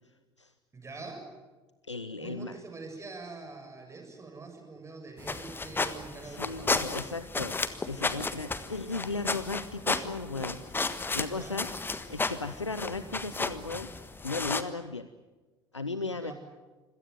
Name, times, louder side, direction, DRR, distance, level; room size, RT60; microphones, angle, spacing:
voice 1, 0.7-1.2 2.2-6.8 11.3-11.6 16.1-16.3, right 3 dB, 20° right, 3 dB, 6.9 m, -44 dB
voice 2, 1.9-2.6 6.2-13.9 14.2-15.1 15.7-16.3, left 3 dB, 85° left, 12 dB, 0.7 m, -36 dB
sound 1, 5.2-14.6, left 3 dB, 15° left, 1.4 m, -33 dB
26.0 x 17.0 x 9.4 m, 1.2 s
figure-of-eight pair, 65°, 15 cm